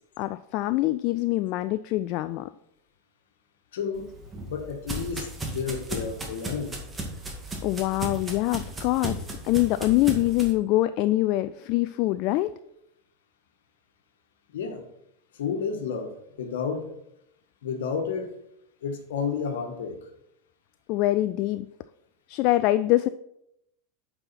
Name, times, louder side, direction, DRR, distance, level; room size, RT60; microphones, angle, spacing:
voice 1, 0.2-2.5 7.6-9.2 9.4-12.5 20.9-21.7 22.3-23.1, left 17 dB, 55° left, 13 dB, 0.3 m, -24 dB
voice 2, 3.7-4.0 4.4-6.8 14.5-14.8 15.4-16.9 17.6-18.4 18.8-20.0, left 6 dB, 70° left, 6 dB, 1.4 m, -31 dB
sound 1, 3.9-10.5, right 1 dB, 20° right, 2.0 m, -36 dB
8.8 x 5.5 x 4.3 m, 0.79 s
hypercardioid pair, 90°, 0 cm